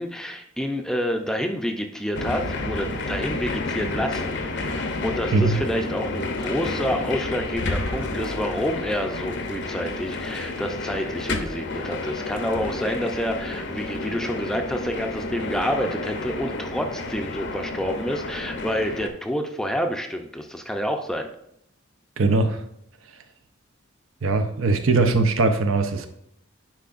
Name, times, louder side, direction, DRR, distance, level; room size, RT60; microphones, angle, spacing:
voice 1, 0.0-21.3, equal, 5° left, 0.5 m, -28 dB
sound 1, 2.1-19.1, left 2 dB, 60° left, 0.7 m, -30 dB
voice 2, 5.3-5.6 22.2-22.6 24.2-26.1, right 3 dB, 75° right, 0.7 m, -20 dB
10.5 x 4.9 x 2.5 m
head